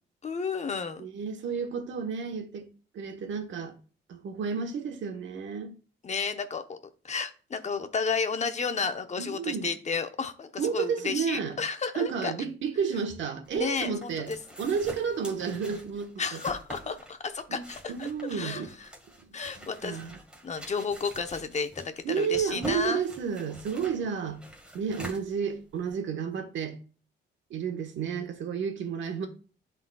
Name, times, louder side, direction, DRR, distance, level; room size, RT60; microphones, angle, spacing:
voice 1, 0.2-1.1 6.0-6.8 7.0-12.3 13.5-14.4 16.2-18.9 19.3-20.0 20.4-23.0, left 5 dB, 35° left, 0.9 m, -32 dB
voice 2, 1.0-2.6 2.9-3.8 4.1-5.8 9.2-9.7 10.6-11.6 11.9-14.3 14.6-16.4 17.5-18.7 19.6-20.1 22.0-24.4 24.7-26.8 27.5-29.3, right 6 dB, 70° right, 1.3 m, -31 dB
sound 1, 13.5-25.9, equal, 5° right, 1.7 m, -46 dB
11.5 x 4.0 x 2.3 m
cardioid pair, 90°, 20 cm